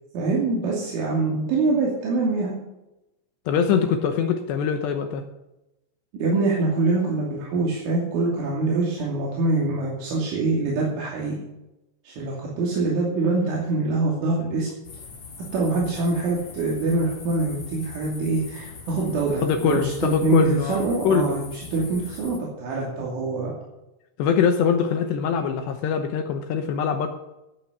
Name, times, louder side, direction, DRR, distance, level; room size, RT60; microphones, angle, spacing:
voice 1, 0.1-2.6 6.2-11.3 12.0-14.7 15.5-21.4 21.7-23.5, right 3 dB, 75° right, -4 dB, 5.1 m, -24 dB
voice 2, 3.5-5.2 19.4-21.4 24.2-27.1, left 6 dB, 75° left, 6 dB, 2.8 m, -23 dB
sound 1, 14.8-22.4, left 5 dB, 45° left, 2.2 m, -41 dB
15.0 x 8.8 x 6.8 m, 0.94 s
omnidirectional pair, 5.7 m